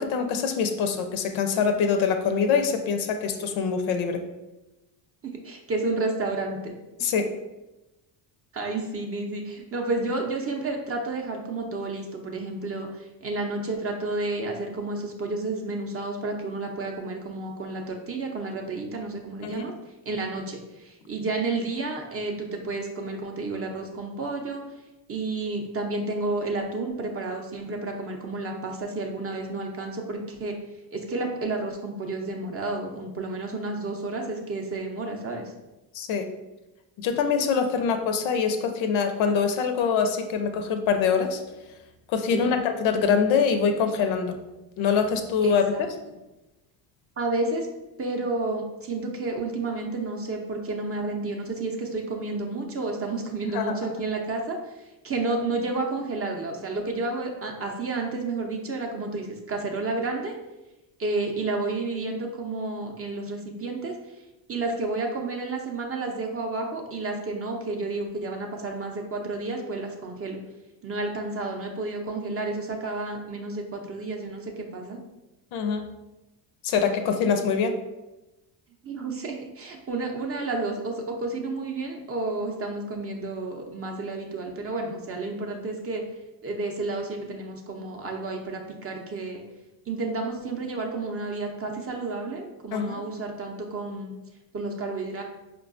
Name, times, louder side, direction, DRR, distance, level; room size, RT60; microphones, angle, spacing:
voice 1, 0.0-4.2 7.0-7.3 19.4-19.7 35.9-36.3 37.0-41.4 42.1-44.4 44.8-45.9 53.4-53.9 75.5-75.9 76.6-77.8 92.7-93.0, left 6 dB, 70° left, 7 dB, 0.6 m, -24 dB
voice 2, 5.2-7.1 8.5-19.7 20.1-24.6 25.1-30.5 30.9-35.5 37.8-37.9 42.3-42.5 45.4-45.8 47.2-47.7 48.0-54.7 55.0-60.4 61.0-64.0 64.5-70.4 70.8-75.0 78.8-86.0 86.4-89.4 89.9-94.1 94.5-95.2, right 3 dB, 30° right, 2 dB, 0.5 m, -31 dB
4.5 x 2.3 x 2.5 m, 1.0 s
supercardioid pair, 85°, 49 cm